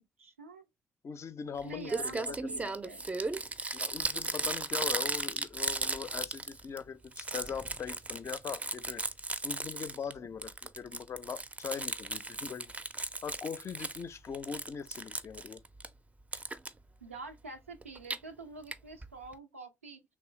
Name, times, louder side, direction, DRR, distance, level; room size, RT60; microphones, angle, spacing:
voice 1, 0.2-0.6 1.6-3.0 17.0-20.0, right 3 dB, 90° right, 0.4 m, -46 dB
voice 2, 1.0-2.7 3.7-9.0 9.4-12.7 13.2-15.6, left 6 dB, 40° left, 0.5 m, -41 dB
Crumpling crinkling, 1.6-1.7 1.9-6.8 7.1-10.1 10.4-14.0 14.3-15.9 16.3-16.7 17.8-18.2 18.7-18.8 19.0-19.1 19.3-19.4, right 3 dB, 20° right, 0.4 m, -36 dB
3.3 x 3.0 x 3.1 m
figure-of-eight pair, 40°, 7 cm